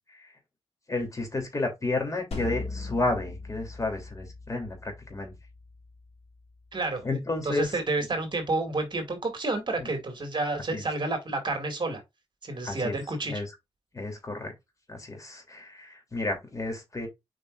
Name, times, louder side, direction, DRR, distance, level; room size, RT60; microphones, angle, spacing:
voice 1, 0.9-5.3 7.0-7.8 9.8-9.9 10.7-10.8 12.6-12.9 13.3-13.5 13.9-14.5 14.9-17.1, left 2 dB, 30° left, 3.1 m, -31 dB
sound 1, 2.3-7.4, left 3 dB, 75° left, 3.1 m, -40 dB
voice 2, 6.7-7.2 7.4-12.0 12.4-13.4, right 2 dB, 45° right, 2.3 m, -30 dB
7.6 x 5.2 x 2.5 m
wide cardioid pair, 120°, 11 cm